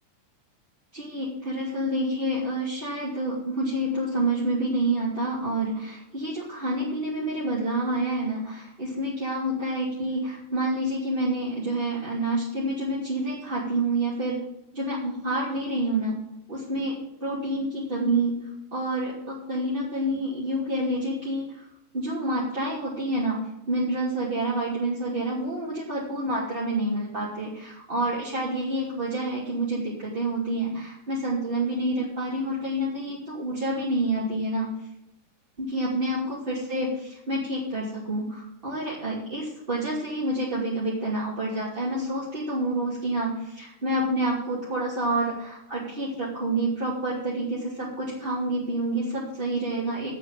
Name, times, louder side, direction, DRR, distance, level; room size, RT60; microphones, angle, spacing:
voice 1, 0.9-14.4 14.7-16.2 16.5-18.4 18.7-21.7 21.9-23.4 23.7-34.7 35.6-50.1, right 1 dB, 15° right, -7 dB, 2.7 m, -28 dB
8.9 x 8.6 x 9.2 m, 0.84 s
omnidirectional pair, 4.3 m